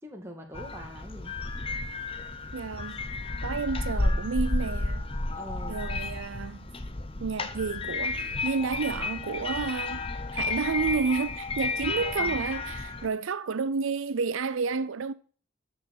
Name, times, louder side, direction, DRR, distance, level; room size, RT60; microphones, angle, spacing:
voice 1, 0.0-1.4 5.4-5.8 12.0-12.4, equal, 15° right, 2.2 m, -43 dB
sound 1, 0.5-13.1, left 3 dB, 25° left, 0.9 m, -32 dB
voice 2, 2.5-3.0 3.4-5.0 5.7-6.7 7.2-10.0 10.3-15.1, right 5 dB, 75° right, 0.5 m, -30 dB
13.5 x 5.7 x 6.0 m
head